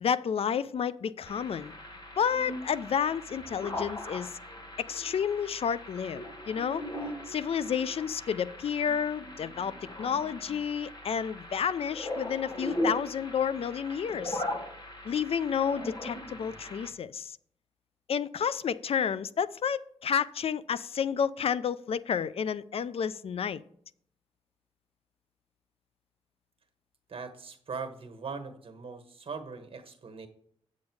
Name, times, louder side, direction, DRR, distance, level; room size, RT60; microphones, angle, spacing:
voice 1, 0.0-1.7 2.2-4.3 4.8-6.8 7.3-9.7 10.0-14.4 15.0-17.4 18.1-23.6, left 7 dB, 60° left, 0.4 m, -30 dB
sound 1, 1.3-16.9, left 1 dB, 40° left, 1.5 m, -39 dB
voice 2, 27.1-30.3, right 5 dB, 55° right, 1.4 m, -40 dB
8.4 x 6.4 x 4.7 m
cardioid pair, 65°, 11 cm